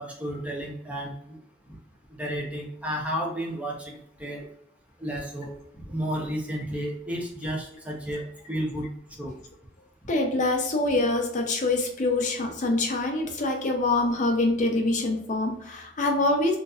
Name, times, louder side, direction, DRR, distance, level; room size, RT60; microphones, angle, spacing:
voice 1, 0.0-1.4 2.2-4.4 5.0-8.9 9.2-9.3, equal, 10° right, -2 dB, 0.7 m, -32 dB
voice 2, 10.1-16.6, left 2 dB, 45° left, 2 dB, 0.5 m, -25 dB
4.0 x 2.5 x 2.4 m, 0.74 s
head